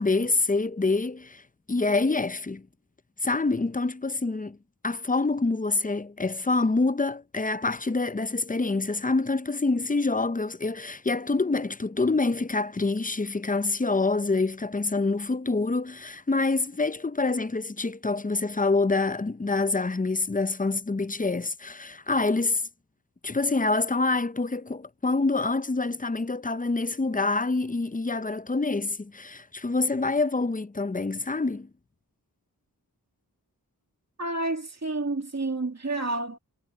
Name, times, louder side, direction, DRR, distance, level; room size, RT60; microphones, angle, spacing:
voice 1, 0.0-1.4 1.7-2.7 3.2-4.6 4.8-22.6 23.2-31.7, left 3 dB, 20° left, 0.6 m, -26 dB
voice 2, 34.2-36.4, right 2 dB, 45° right, 2.4 m, -29 dB
wide cardioid pair, 40°, 38 cm